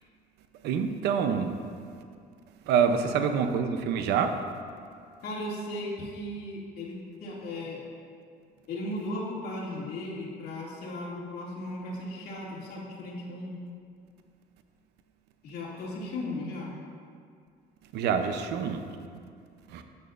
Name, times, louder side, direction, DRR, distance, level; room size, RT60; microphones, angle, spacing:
voice 1, 0.6-1.6 2.6-4.4 17.9-18.8 19.7-19.8, right 6 dB, 80° right, 7 dB, 0.7 m, -26 dB
voice 2, 5.2-7.8 8.7-13.6 15.4-16.7, left 1 dB, 65° left, -4 dB, 2.4 m, -36 dB
11.5 x 9.1 x 2.6 m, 2.2 s
cardioid pair, 110°, 17 cm